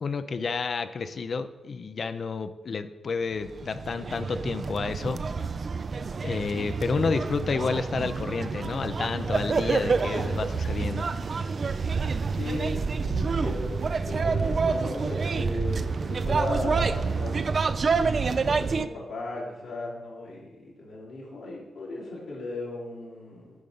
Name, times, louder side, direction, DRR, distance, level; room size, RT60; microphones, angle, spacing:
voice 1, 0.0-5.2 6.2-11.1, left 5 dB, 60° left, 11 dB, 0.5 m, -30 dB
sound 1, 3.4-18.9, right 4 dB, 55° right, 0.4 m, -28 dB
voice 2, 12.3-17.5 18.3-23.5, left 2 dB, 90° left, -6 dB, 2.5 m, -36 dB
9.4 x 3.8 x 5.3 m, 1.1 s
supercardioid pair, 45°, 0 cm